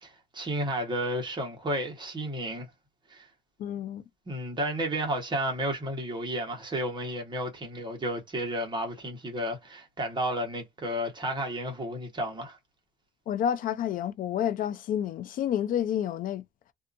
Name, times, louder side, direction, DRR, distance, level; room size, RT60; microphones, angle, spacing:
voice 1, 0.0-2.7 3.1-3.3 4.3-12.6, right 1 dB, 25° right, 1.2 m, -32 dB
voice 2, 3.6-4.0 13.3-16.4, left 10 dB, 55° left, 0.5 m, -29 dB
2.6 x 2.5 x 2.5 m
cardioid pair, 110°, 17 cm